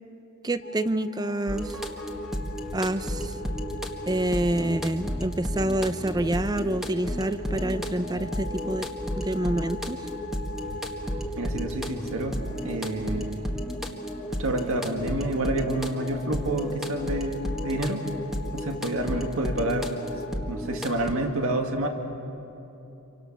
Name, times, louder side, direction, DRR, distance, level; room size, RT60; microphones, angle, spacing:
voice 1, 0.4-1.8 2.7-3.3 4.1-8.9 9.2-10.0, right 1 dB, 20° right, 12 dB, 0.6 m, -27 dB
sound 1, 0.6-20.4, left 3 dB, 45° left, 2.1 m, -43 dB
sound 2, 1.5-21.1, equal, ahead, 1.6 m, -33 dB
voice 2, 11.4-12.4 12.6-13.4 14.4-18.1 18.5-20.0 20.5-21.9, right 1 dB, 65° right, 4 dB, 2.1 m, -28 dB
28.0 x 24.5 x 6.2 m, 2.9 s
head